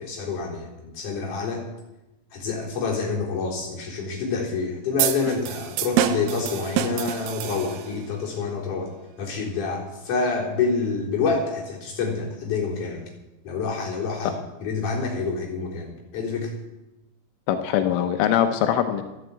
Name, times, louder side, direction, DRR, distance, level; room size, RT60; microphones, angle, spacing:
voice 1, 0.0-1.7 2.3-8.9 9.2-13.0 13.4-16.5, left 4 dB, 45° left, -3 dB, 5.2 m, -27 dB
sound 1, 5.0-8.1, right 11 dB, 80° right, 3.4 m, -26 dB
voice 2, 17.5-19.0, left 10 dB, 85° left, 6 dB, 3.5 m, -22 dB
13.5 x 11.0 x 8.5 m, 0.98 s
omnidirectional pair, 5.5 m